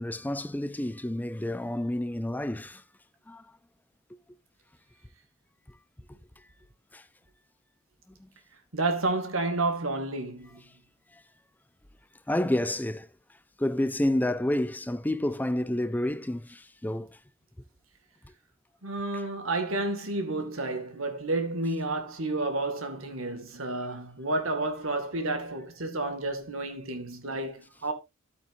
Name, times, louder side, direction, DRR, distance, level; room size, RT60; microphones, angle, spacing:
voice 1, 0.0-2.8 3.3-3.4 6.9-7.0 12.3-13.1 13.6-17.2, left 1 dB, 10° left, 0.5 m, -29 dB
voice 2, 8.7-10.6 18.8-27.9, right 2 dB, 85° right, 2.1 m, -30 dB
12.0 x 8.6 x 2.6 m
head